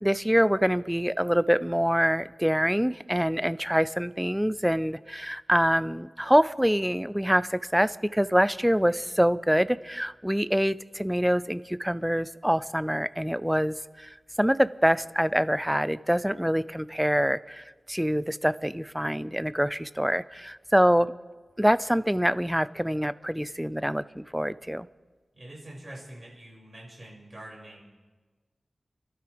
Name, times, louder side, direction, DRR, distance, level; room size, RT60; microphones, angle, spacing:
voice 1, 0.0-14.1 14.4-21.1 21.6-24.9, equal, 5° right, 16 dB, 0.4 m, -25 dB
voice 2, 25.3-27.8, right 1 dB, 35° right, -4 dB, 6.2 m, -45 dB
30.0 x 12.5 x 3.5 m, 1.3 s
wide cardioid pair, 90°, 0 cm